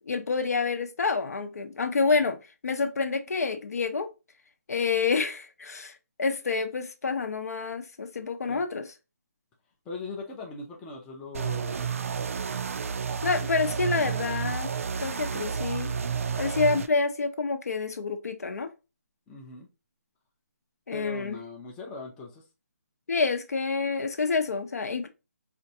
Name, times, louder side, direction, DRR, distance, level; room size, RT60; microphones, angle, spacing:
voice 1, 0.1-2.4 2.6-4.1 4.7-8.9 13.2-14.7 15.0-15.9 16.4-18.7 20.9-21.4 23.1-25.1, left 4 dB, 70° left, 0.7 m, -28 dB
voice 2, 9.9-11.9 19.3-19.7 20.9-22.4, left 3 dB, 10° left, 0.4 m, -40 dB
sound 1, 11.3-16.9, right 6 dB, 60° right, 0.4 m, -31 dB
4.3 x 2.6 x 2.7 m
hypercardioid pair, 165°, 9 cm